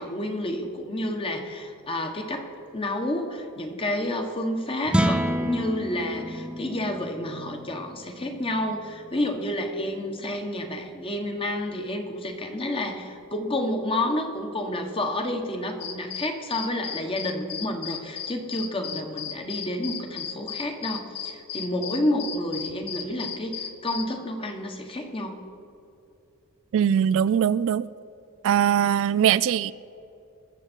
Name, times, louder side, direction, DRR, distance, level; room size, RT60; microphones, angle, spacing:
voice 1, 0.0-25.4, left 1 dB, 25° left, 4 dB, 1.4 m, -30 dB
sound 1, 4.8-11.2, right 1 dB, 5° right, 0.5 m, -31 dB
sound 2, 15.8-24.0, left 8 dB, 85° left, 1.0 m, -35 dB
voice 2, 26.7-27.9 28.4-29.7, right 9 dB, 60° right, 16 dB, 0.3 m, -21 dB
21.5 x 7.5 x 4.5 m, 2.7 s
head